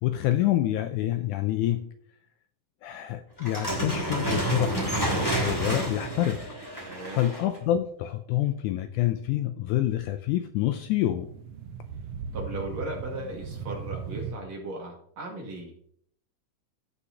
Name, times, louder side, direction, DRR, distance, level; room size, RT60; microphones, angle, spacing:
voice 1, 0.0-1.9 2.8-4.9 5.4-6.5 7.1-11.3, left 13 dB, 80° left, 1.8 m, -27 dB
sound 1, 3.4-7.6, right 1 dB, 10° left, 2.0 m, -29 dB
voice 2, 6.9-7.2 12.3-15.7, right 1 dB, 55° right, 3.1 m, -37 dB
sound 2, 10.6-14.3, right 6 dB, 75° right, 1.4 m, -37 dB
16.0 x 5.6 x 2.8 m
omnidirectional pair, 3.8 m